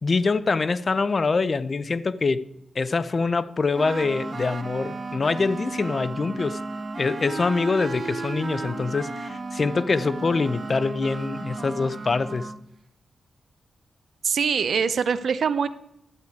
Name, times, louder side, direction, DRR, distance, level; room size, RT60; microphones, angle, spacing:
voice 1, 0.0-2.5 2.7-6.6 7.0-12.5, left 4 dB, 45° left, 0.6 m, -24 dB
sound 1, 3.7-12.6, right 3 dB, 50° right, 1.2 m, -34 dB
voice 2, 14.2-15.7, right 6 dB, 75° right, 0.7 m, -23 dB
12.0 x 8.6 x 4.6 m
cardioid pair, 65°, 0 cm